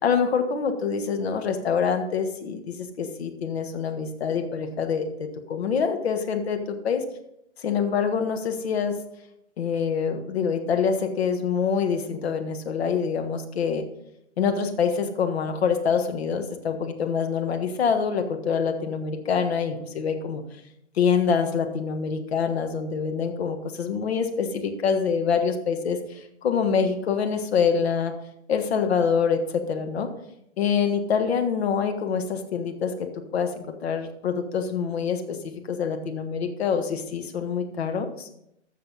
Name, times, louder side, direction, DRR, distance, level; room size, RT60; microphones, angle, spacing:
voice 1, 0.0-7.0 7.6-9.0 9.6-13.8 14.4-20.4 20.9-28.1 28.5-30.1 30.6-38.3, left 6 dB, 60° left, 6 dB, 1.5 m, -25 dB
13.5 x 6.8 x 4.0 m, 0.77 s
figure-of-eight pair, 115°, 36 cm